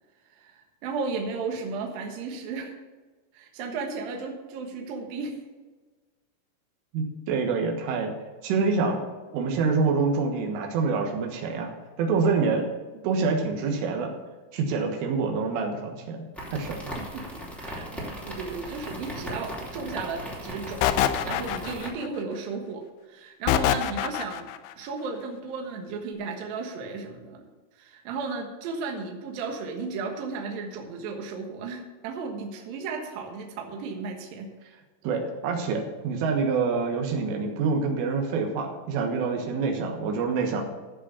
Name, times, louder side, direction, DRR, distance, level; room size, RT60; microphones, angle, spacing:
voice 1, 0.3-2.7 3.3-5.4 17.0-24.5 24.8-27.5 27.8-34.5, right 4 dB, 65° right, 2 dB, 2.5 m, -34 dB
voice 2, 6.9-8.1 8.4-9.0 9.3-11.7 12.0-12.7 13.0-14.1 14.5-16.2 16.5-16.9 35.0-40.6, right 4 dB, 80° right, 2 dB, 3.9 m, -26 dB
sound 1, 16.4-21.9, equal, ahead, 0.8 m, -37 dB
sound 2, 20.8-22.1 23.5-24.6, left 11 dB, 85° left, 3.0 m, -24 dB
14.0 x 5.2 x 6.9 m, 1.3 s
omnidirectional pair, 5.7 m